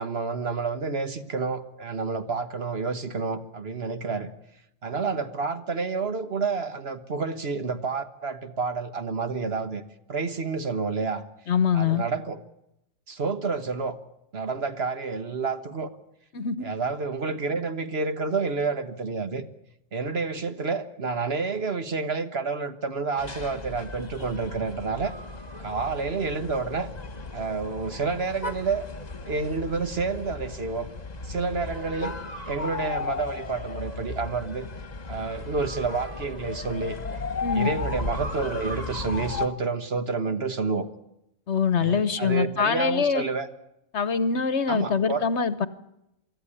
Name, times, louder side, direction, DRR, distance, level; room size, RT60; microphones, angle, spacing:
voice 1, 0.0-4.3 4.8-9.8 10.1-11.2 11.7-12.4 13.1-14.0 14.3-15.9 16.6-19.4 19.9-25.1 25.6-26.9 27.3-28.9 29.2-30.9 31.2-32.1 32.5-34.7 35.1-37.0 37.5-40.9 41.8-43.5 44.7-45.3, right 4 dB, 50° right, 9 dB, 1.6 m, -29 dB
voice 2, 11.5-12.0 16.3-16.6 37.4-37.7 41.5-43.3 43.9-45.7, left 6 dB, 60° left, 14 dB, 1.2 m, -24 dB
sound 1, 23.2-39.5, left 3 dB, 35° left, 1.5 m, -35 dB
24.5 x 14.0 x 10.0 m, 0.84 s
omnidirectional pair, 1.3 m